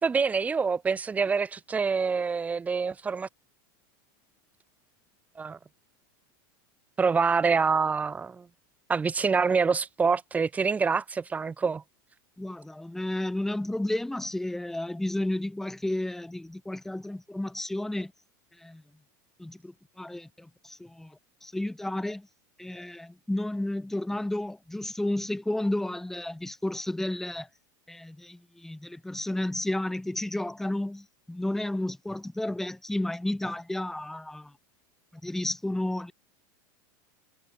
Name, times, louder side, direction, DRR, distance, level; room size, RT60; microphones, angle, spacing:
voice 1, 0.0-3.3 5.4-5.6 7.0-8.5 8.9-11.8, right 5 dB, 15° right, 1.5 m, -26 dB
voice 2, 12.4-18.1 18.6-18.8 19.4-22.3 22.6-27.5 27.9-34.5 35.1-36.1, left 1 dB, 5° left, 1.2 m, -32 dB
supercardioid pair, 150°, 11 cm